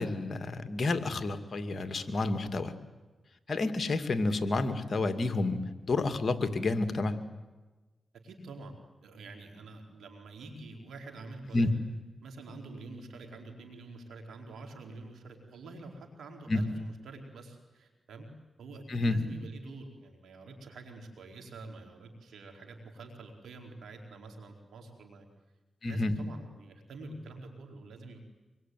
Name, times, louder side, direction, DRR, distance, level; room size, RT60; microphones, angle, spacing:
voice 1, 0.0-2.7 3.5-7.2 11.5-11.7 16.5-16.6 18.9-19.2 25.8-26.1, left 2 dB, 55° left, 9 dB, 2.5 m, -30 dB
voice 2, 8.2-11.7 12.2-18.3 18.6-25.3 25.8-28.2, right 2 dB, 85° right, 4 dB, 4.2 m, -47 dB
25.5 x 22.0 x 9.4 m, 1.2 s
supercardioid pair, 40°, 0 cm